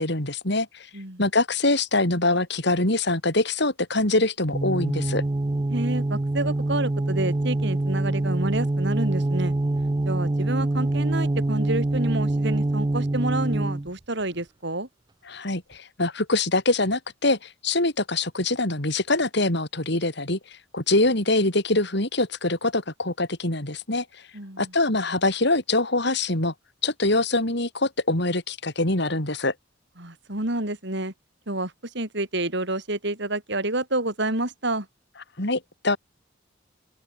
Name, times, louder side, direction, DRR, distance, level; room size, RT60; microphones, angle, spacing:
voice 1, 0.0-0.9 1.2-5.2 15.3-24.2 24.6-26.5 26.8-29.5 35.4-36.0, left 2 dB, 60° left, 5.0 m, -24 dB
sound 1, 4.5-13.9, right 2 dB, 20° right, 0.5 m, -25 dB
voice 2, 5.7-9.5 10.0-14.9 24.3-24.7 30.0-31.1 31.5-34.9, right 1 dB, 60° right, 6.2 m, -29 dB
open air
head